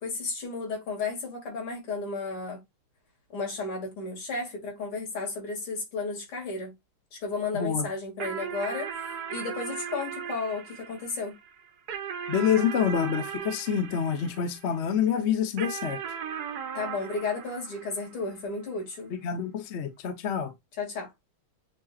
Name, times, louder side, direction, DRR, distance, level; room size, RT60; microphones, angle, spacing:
voice 1, 0.0-2.6 3.3-6.7 7.1-8.9 9.3-11.4 16.7-19.1 20.8-21.1, left 3 dB, 85° left, 3.4 m, -33 dB
voice 2, 7.5-7.9 12.3-16.0 19.1-20.5, left 8 dB, 50° left, 0.8 m, -27 dB
sound 1, 8.2-14.9 15.6-18.4, right 7 dB, 65° right, 1.1 m, -38 dB
7.4 x 2.9 x 2.4 m
omnidirectional pair, 2.3 m